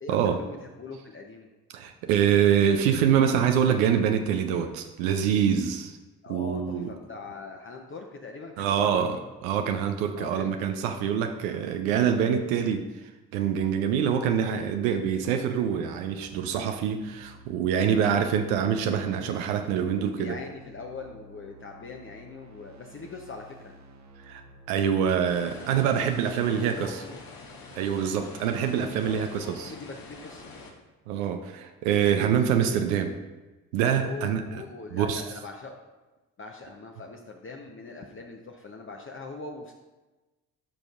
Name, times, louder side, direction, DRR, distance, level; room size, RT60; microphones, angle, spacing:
voice 1, 0.0-1.5 6.2-9.1 10.2-10.6 14.3-14.4 17.9-18.2 19.8-23.7 26.4-27.2 28.5-30.5 34.0-35.8 36.4-39.7, left 3 dB, 30° left, 1 dB, 0.7 m, -42 dB
voice 2, 1.7-6.0 6.3-6.9 8.6-9.2 9.4-12.8 13.3-20.4 24.2-24.4 24.7-27.0 27.7-29.7 31.1-33.2 33.7-34.4 34.9-35.2, right 8 dB, 90° right, 6 dB, 0.5 m, -25 dB
sound 1, 15.9-27.7, right 1 dB, 45° right, 0.9 m, -52 dB
sound 2, 25.3-30.7, left 3 dB, 60° left, 1.3 m, -46 dB
10.5 x 5.2 x 2.4 m, 1.1 s
hypercardioid pair, 50°, 40 cm